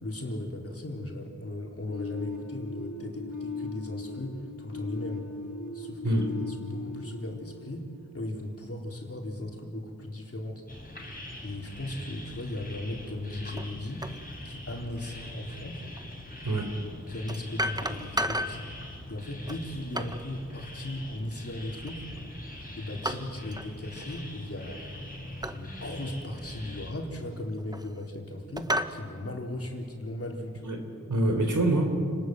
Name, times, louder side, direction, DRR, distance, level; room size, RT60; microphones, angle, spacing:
voice 1, 0.0-5.3 5.7-6.0 6.5-7.9 8.1-10.6 11.4-14.0 14.4-15.8 17.1-18.7 19.1-22.0 22.8-24.8 25.4-30.7, left 1 dB, 50° left, 0 dB, 4.0 m, -37 dB
sound 1, 1.9-8.7, left 3 dB, 75° left, 3.1 m, -39 dB
sound 2, 10.7-26.9, left 1 dB, 30° left, 4.2 m, -42 dB
sound 3, 13.6-13.7 14.0-14.2 16.0-16.1 17.3-18.6 19.5-20.3 21.9-22.3 23.0-23.7 23.9-24.2 25.4-25.6 26.2-26.3 27.3-28.1 28.6-29.0, equal, 15° right, 1.1 m, -33 dB
voice 2, 30.6-31.9, right 1 dB, 85° right, 4 dB, 3.8 m, -26 dB
30.0 x 19.5 x 7.9 m, 2.4 s
wide cardioid pair, 80°, 30 cm